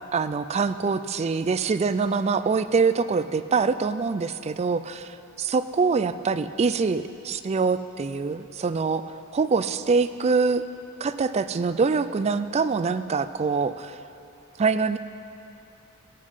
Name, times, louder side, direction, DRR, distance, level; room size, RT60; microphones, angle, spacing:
voice 1, 0.1-4.9 5.5-10.6 11.0-14.0 14.6-15.0, right 4 dB, 30° right, 13 dB, 0.3 m, -24 dB
15.0 x 8.5 x 5.5 m, 2.9 s
head